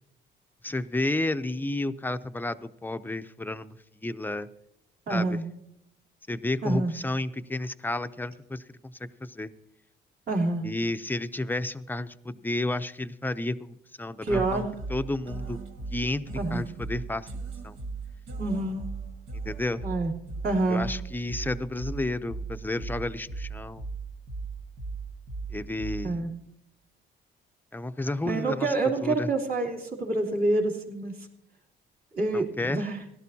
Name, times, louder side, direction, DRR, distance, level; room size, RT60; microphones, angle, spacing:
voice 1, 0.6-4.5 5.1-5.4 6.3-8.9 9.2-9.5 10.6-15.6 15.9-17.3 17.6-17.8 19.4-19.9 20.7-23.9 25.5-26.2 27.7-28.7 29.0-29.3 32.3-32.9, left 2 dB, 10° left, 11 dB, 0.6 m, -31 dB
voice 2, 5.1-5.4 6.6-6.9 10.3-10.7 14.2-14.7 16.3-16.6 18.4-18.9 19.8-20.1 20.4-20.9 26.0-26.3 28.3-31.1 32.1-33.0, right 2 dB, 50° right, -1 dB, 3.2 m, -27 dB
sound 1, 14.3-26.3, right 4 dB, 80° right, 1.7 m, -38 dB
17.5 x 12.0 x 2.8 m, 0.83 s
cardioid pair, 90°, 20 cm